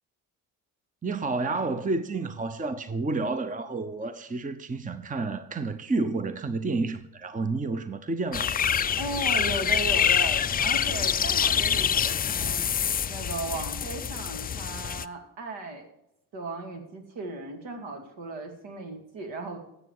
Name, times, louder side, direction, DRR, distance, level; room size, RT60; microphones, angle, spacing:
voice 1, 1.0-8.5, right 3 dB, 15° right, 0.8 m, -30 dB
sound 1, 8.3-15.1, left 8 dB, 20° left, 0.3 m, -26 dB
voice 2, 8.9-12.6 13.1-15.9 16.3-19.6, right 2 dB, 65° right, 2.6 m, -36 dB
14.0 x 8.0 x 4.8 m
hypercardioid pair, 55°, 48 cm